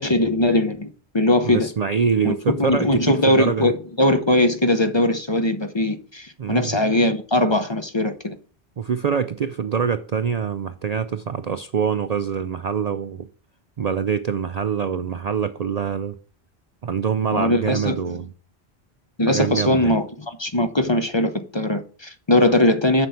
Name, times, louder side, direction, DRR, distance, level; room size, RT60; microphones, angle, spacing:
voice 1, 0.0-1.7 2.2-8.4 17.3-18.0 19.2-23.1, left 1 dB, 30° left, 0.7 m, -20 dB
voice 2, 1.4-3.7 6.4-6.8 8.8-13.3 13.8-16.1 16.8-18.3 19.3-19.9, right 7 dB, 55° right, 0.5 m, -24 dB
7.6 x 6.0 x 6.9 m
omnidirectional pair, 1.1 m